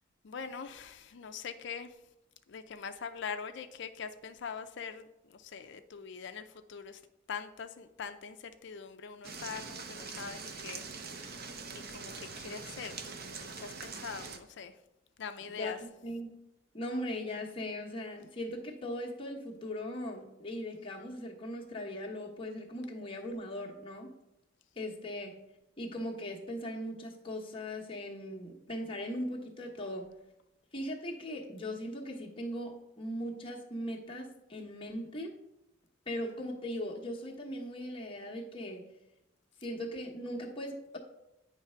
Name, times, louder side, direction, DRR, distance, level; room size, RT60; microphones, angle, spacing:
voice 1, 0.2-1.9 2.5-7.0 7.3-10.8 11.1-11.4 11.7-13.1 13.6-14.7 15.2-15.8, left 6 dB, 60° left, 8 dB, 0.4 m, -43 dB
sound 1, 9.2-14.4, right 4 dB, 50° right, 0.7 m, -43 dB
voice 2, 15.5-16.3 16.7-24.1 24.8-25.3 25.8-30.1 30.7-35.3 36.1-38.9 39.6-41.0, left 1 dB, 25° left, -2 dB, 1.1 m, -39 dB
9.4 x 3.2 x 5.6 m, 0.92 s
head